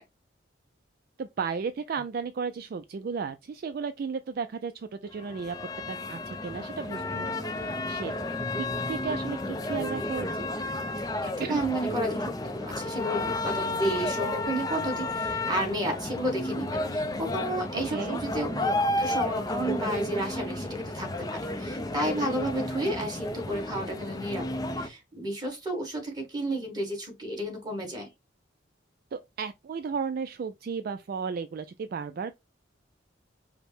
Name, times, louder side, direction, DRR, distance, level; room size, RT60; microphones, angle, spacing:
voice 1, 1.2-5.6 5.9-8.1 8.5-10.5 11.4-11.6 17.7-18.2 29.1-32.3, right 5 dB, 50° right, 0.3 m, -34 dB
sound 1, 5.1-24.9, left 1 dB, 20° left, 0.4 m, -32 dB
voice 2, 11.2-24.4 24.7-28.1, right 1 dB, 20° right, 1.6 m, -32 dB
5.0 x 2.1 x 4.4 m
head